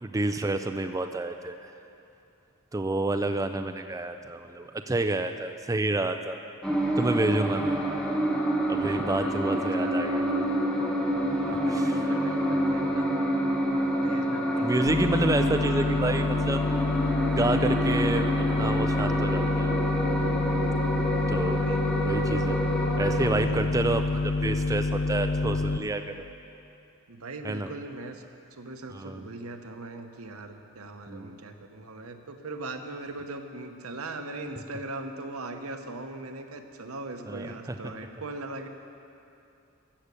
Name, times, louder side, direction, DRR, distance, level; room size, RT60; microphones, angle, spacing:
voice 1, 0.0-1.7 2.7-6.4 7.0-7.8 8.7-10.3 11.7-12.1 14.6-16.6 17.4-19.8 21.3-21.6 22.0-22.6 23.0-26.2 27.4-27.7 28.9-29.3 31.1-31.4 37.3-37.9, right 2 dB, 15° right, 7 dB, 0.4 m, -29 dB
sound 1, 6.6-23.3, equal, 5° left, 1.2 m, -28 dB
voice 2, 7.1-7.8 8.8-10.5 11.4-13.1 13.8-14.7 21.4-21.8 23.4-23.7 27.1-28.2 28.5-38.7, right 2 dB, 85° right, 6 dB, 1.0 m, -40 dB
sound 2, 14.9-25.8, left 3 dB, 55° left, 0.5 m, -27 dB
14.5 x 6.7 x 8.4 m, 2.7 s
head